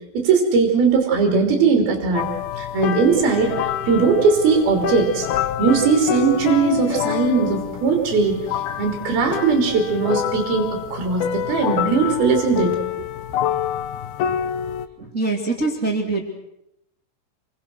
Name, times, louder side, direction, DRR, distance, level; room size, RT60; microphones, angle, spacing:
voice 1, 0.1-2.3 2.6-5.3 5.6-12.8, right 4 dB, 55° right, 2 dB, 4.9 m, -19 dB
sound 1, 2.1-14.9, left 10 dB, 70° left, 2.4 m, -27 dB
voice 2, 15.0-16.2, right 3 dB, 25° right, 2 dB, 1.7 m, -23 dB
28.5 x 23.5 x 6.3 m, 0.83 s
omnidirectional pair, 5.6 m